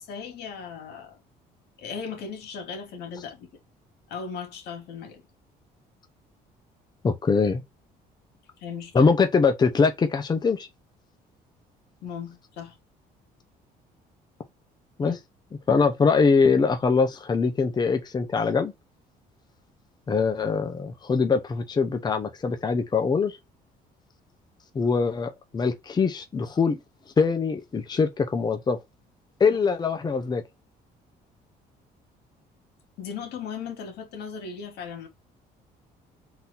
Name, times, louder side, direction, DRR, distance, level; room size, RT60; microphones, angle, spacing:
voice 1, 0.1-1.2 1.8-3.5 4.1-5.2 8.6-9.1 12.0-12.8 15.0-15.2 33.0-35.1, left 6 dB, 75° left, 2.0 m, -37 dB
voice 2, 7.0-7.6 8.9-10.7 15.0-15.1 15.7-18.7 20.1-23.4 24.7-26.8 27.2-28.8 29.4-30.4, left 5 dB, 25° left, 0.7 m, -23 dB
4.0 x 2.7 x 4.0 m
cardioid pair, 110°, 17 cm